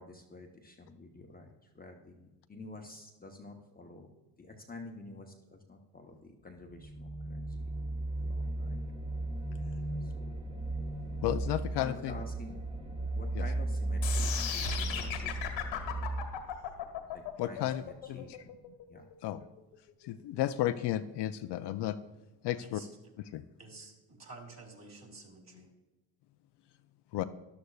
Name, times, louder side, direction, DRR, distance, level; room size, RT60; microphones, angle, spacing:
voice 1, 0.0-4.1 4.4-7.7 8.2-8.8 10.0-10.3 11.8-12.7 13.2-16.0 17.1-18.6 18.9-19.1, left 2 dB, 20° left, 2 dB, 0.9 m, -49 dB
sound 1, 6.7-16.2, right 2 dB, 10° right, 1.1 m, -35 dB
voice 2, 11.2-12.2 13.4-13.5 17.4-17.8 18.1-18.4 19.2-19.4 20.0-22.0 22.4-22.8 23.3-23.4 27.1-27.2, left 12 dB, 60° left, 10 dB, 0.6 m, -33 dB
sound 2, 14.0-20.1, left 9 dB, 75° left, 1.6 m, -37 dB
voice 3, 22.6-23.1 23.6-25.7, right 3 dB, 35° right, 2 dB, 2.6 m, -51 dB
13.0 x 11.0 x 2.4 m, 1.1 s
cardioid pair, 90°, 46 cm